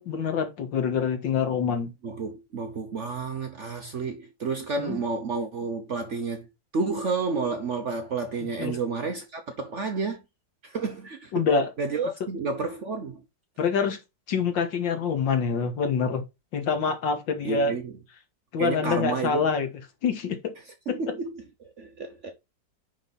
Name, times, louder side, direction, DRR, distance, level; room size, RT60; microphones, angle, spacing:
voice 1, 0.0-1.9 4.8-5.0 8.6-8.8 11.3-11.7 13.6-14.0 14.3-16.2 16.5-17.7 18.5-19.7 20.0-20.4 20.9-21.0, left 5 dB, 90° left, 2.2 m, -26 dB
voice 2, 2.0-6.5 6.7-10.2 10.6-11.5 11.8-13.2 17.4-18.0 18.6-19.5 20.9-22.3, right 4 dB, 50° right, 1.0 m, -30 dB
9.8 x 3.9 x 4.1 m
omnidirectional pair, 2.0 m